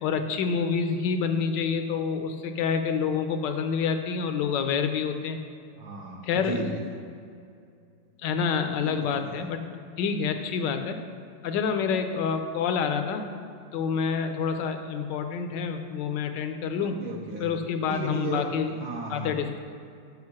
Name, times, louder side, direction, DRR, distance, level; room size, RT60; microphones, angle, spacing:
voice 1, 0.0-5.4 6.2-6.6 8.2-9.6 10.0-11.0 11.4-13.3 13.7-17.0 17.4-18.7 19.1-19.6, left 6 dB, 75° left, 7 dB, 1.2 m, -27 dB
voice 2, 5.8-6.9 8.8-9.3 16.8-17.5 17.9-19.3, right 3 dB, 65° right, -1 dB, 1.1 m, -35 dB
7.5 x 5.1 x 5.9 m, 2.4 s
omnidirectional pair, 2.0 m